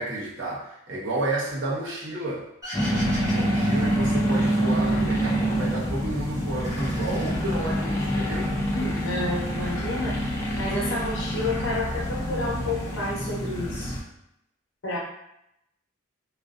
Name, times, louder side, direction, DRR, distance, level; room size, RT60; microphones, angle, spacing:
voice 1, 0.0-2.5 3.3-8.5, right 1 dB, 65° right, -5 dB, 0.7 m, -31 dB
sound 1, 2.6-5.0 5.3-6.1 6.4-8.0, equal, 15° right, 0.7 m, -39 dB
sound 2, 2.7-14.0, equal, 15° left, 0.3 m, -26 dB
voice 2, 8.7-10.2 10.6-14.0 14.8-15.0, left 2 dB, 65° left, -4 dB, 0.8 m, -30 dB
2.5 x 2.1 x 2.4 m, 0.81 s
head